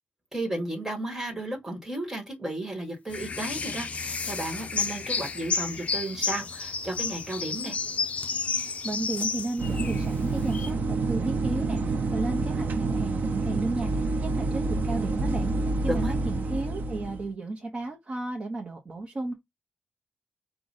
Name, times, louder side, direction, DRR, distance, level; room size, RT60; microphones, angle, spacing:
voice 1, 0.3-7.8 15.9-16.1, right 1 dB, 15° right, 1.6 m, -33 dB
sound 1, 3.1-10.7, left 5 dB, 45° left, 0.6 m, -31 dB
voice 2, 8.6-19.3, right 2 dB, 30° right, 0.9 m, -34 dB
sound 2, 9.6-17.3, right 3 dB, 70° right, 0.7 m, -28 dB
5.0 x 2.4 x 4.0 m
wide cardioid pair, 160°, 3 cm